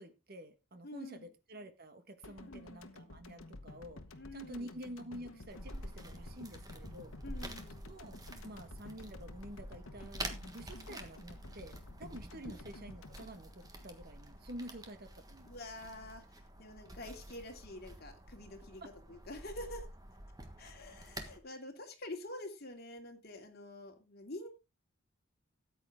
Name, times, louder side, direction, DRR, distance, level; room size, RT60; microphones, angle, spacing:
voice 1, 0.0-4.0 4.3-7.1 7.8-8.2 8.4-15.5, equal, 45° right, 1.4 m, -49 dB
voice 2, 0.8-1.3 2.5-2.8 4.1-4.7 7.2-7.8 15.5-18.8 19.1-19.9 20.6-24.5, left 1 dB, 50° left, 2.5 m, -47 dB
sound 1, 2.2-14.4 14.7-14.9, left 2 dB, 80° left, 1.2 m, -52 dB
sound 2, 5.5-21.4, right 1 dB, 20° right, 1.4 m, -48 dB
13.5 x 8.9 x 3.6 m
head